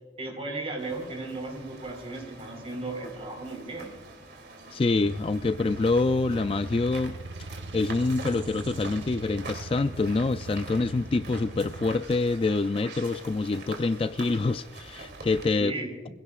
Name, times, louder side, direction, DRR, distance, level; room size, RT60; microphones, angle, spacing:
voice 1, 0.2-3.9 15.6-16.1, right 2 dB, 30° right, 2 dB, 4.1 m, -35 dB
sound 1, 0.8-15.4, right 3 dB, 60° right, 2.8 m, -45 dB
voice 2, 4.7-7.2 7.7-15.7, left 3 dB, 30° left, 11 dB, 0.3 m, -26 dB
sound 2, 5.0-11.9, right 2 dB, 75° right, 1.0 m, -40 dB
24.0 x 16.5 x 2.4 m, 1.4 s
head